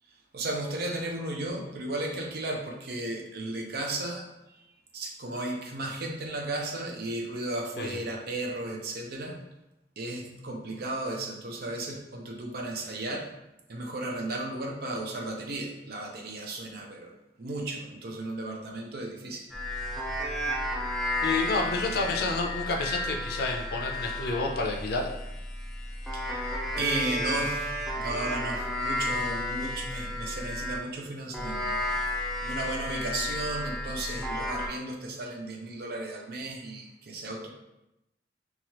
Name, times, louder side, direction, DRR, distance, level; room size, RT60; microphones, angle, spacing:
voice 1, 0.3-4.3 4.9-9.4 10.0-13.3 13.7-17.1 17.4-19.4 26.1-31.8 32.4-37.5, right 2 dB, 60° right, 1 dB, 0.5 m, -34 dB
sound 1, 19.5-30.9 31.3-34.7, left 1 dB, ahead, 0.4 m, -32 dB
voice 2, 21.2-25.1, left 3 dB, 60° left, 1 dB, 0.5 m, -29 dB
2.9 x 2.3 x 2.9 m, 0.90 s
head